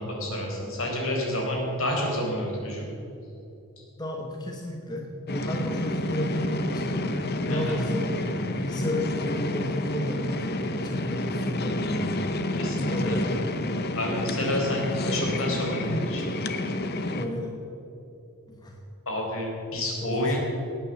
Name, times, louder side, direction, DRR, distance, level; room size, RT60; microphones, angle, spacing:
voice 1, 0.0-2.9 7.5-7.8 12.6-13.2 14.0-16.2 19.1-20.4, left 1 dB, 65° left, -1 dB, 4.4 m, -29 dB
voice 2, 4.0-7.0 7.5-12.2 12.8-13.4 17.1-17.5 18.5-18.8 20.0-20.4, equal, 20° left, 1 dB, 1.2 m, -32 dB
sound 1, 5.3-17.2, left 1 dB, 45° left, 1.0 m, -29 dB
19.0 x 9.0 x 7.2 m, 2.8 s
head